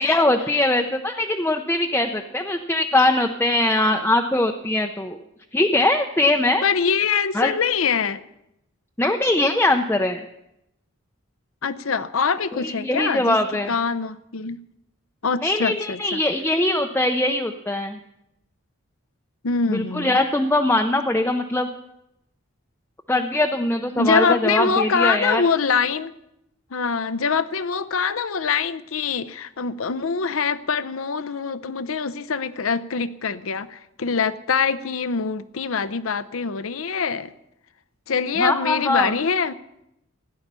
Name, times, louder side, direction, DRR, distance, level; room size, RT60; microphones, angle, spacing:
voice 1, 0.0-5.2 5.5-6.6 7.3-7.5 9.0-10.2 12.5-13.7 15.4-18.0 19.7-21.7 23.1-25.4 38.4-39.1, left 1 dB, 10° left, 3 dB, 0.6 m, -21 dB
voice 2, 6.6-8.2 11.6-13.4 13.7-14.6 15.2-16.2 19.4-20.2 24.0-26.1 26.7-37.3 38.1-39.5, left 5 dB, 75° left, 13 dB, 0.7 m, -24 dB
16.0 x 10.5 x 6.8 m, 0.84 s
head